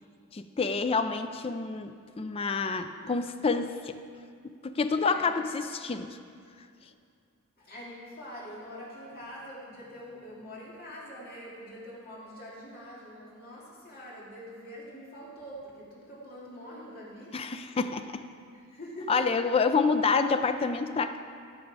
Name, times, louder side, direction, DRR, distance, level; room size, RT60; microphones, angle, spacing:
voice 1, 0.3-4.0 4.4-6.2 17.3-18.2 19.1-21.2, left 4 dB, 25° left, 9 dB, 0.4 m, -28 dB
voice 2, 4.9-5.4 6.8-6.9 7.6-17.3 18.5-19.2, equal, 45° left, -6 dB, 2.5 m, -44 dB
16.5 x 6.3 x 4.8 m, 2.2 s
head